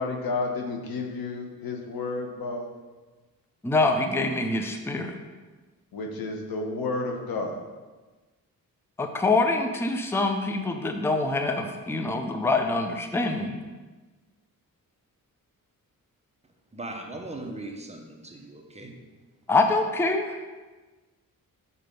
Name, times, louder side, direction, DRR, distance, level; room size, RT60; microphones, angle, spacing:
voice 1, 0.0-2.7 5.9-7.6, left 3 dB, 85° left, 2 dB, 1.1 m, -31 dB
voice 2, 3.6-5.1 9.0-13.6 19.5-20.5, left 3 dB, 5° left, 5 dB, 0.5 m, -25 dB
voice 3, 16.7-19.0, right 2 dB, 20° right, 2 dB, 0.9 m, -39 dB
6.7 x 4.3 x 5.3 m, 1.3 s
cardioid pair, 100°, 35 cm